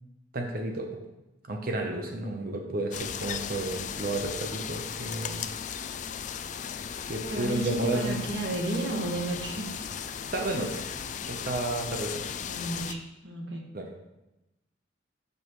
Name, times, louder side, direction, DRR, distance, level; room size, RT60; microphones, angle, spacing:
voice 1, 0.3-0.9 1.4-5.5 7.1-8.2 10.3-10.8 11.3-12.3 13.7-13.9, right 2 dB, 50° right, 2 dB, 0.9 m, -32 dB
sound 1, 2.9-12.9, left 7 dB, 40° left, 0.4 m, -36 dB
voice 2, 7.3-9.7 12.5-13.6, right 1 dB, 70° right, 0 dB, 1.8 m, -32 dB
12.5 x 5.5 x 3.2 m, 0.97 s
head